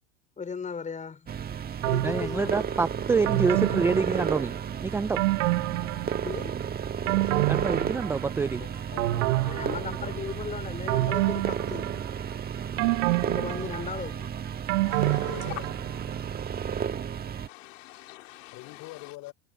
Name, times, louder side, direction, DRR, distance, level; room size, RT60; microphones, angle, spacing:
voice 1, 0.4-1.3 1.8-2.9 3.7-4.0 6.2-6.6 9.4-12.0 13.3-14.3, left 5 dB, 20° left, 5.0 m, -37 dB
sound 1, 1.3-17.5, right 7 dB, 25° right, 1.7 m, -33 dB
sound 2, 1.8-2.6 3.3-4.7 5.2-6.5 6.8-8.5 9.0-10.3 10.9-12.3 12.8-16.0 16.4-16.5, right 19 dB, 65° right, 0.7 m, -28 dB
voice 2, 2.0-4.6 4.8-5.2 7.5-8.6, right 4 dB, 5° right, 0.3 m, -26 dB
voice 3, 8.6-10.5 14.8-15.6 18.5-19.3, left 20 dB, 50° left, 3.8 m, -44 dB
voice 4, 14.9-15.7 17.5-19.3, left 17 dB, 70° left, 4.0 m, -44 dB
hypercardioid pair, 100°, 40 cm